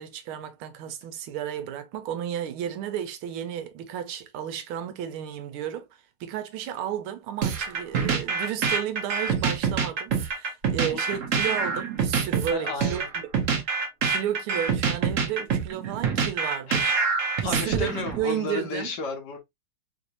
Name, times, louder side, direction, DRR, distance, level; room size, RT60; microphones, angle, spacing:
voice 1, 0.0-13.3 13.7-17.0 17.4-18.9, right 10 dB, 90° right, 1.5 m, -33 dB
sound 1, 7.4-18.2, right 5 dB, 55° right, 0.9 m, -26 dB
voice 2, 12.5-13.1 16.7-16.8 17.4-19.4, left 4 dB, 65° left, 1.2 m, -33 dB
3.7 x 2.6 x 2.7 m
omnidirectional pair, 2.3 m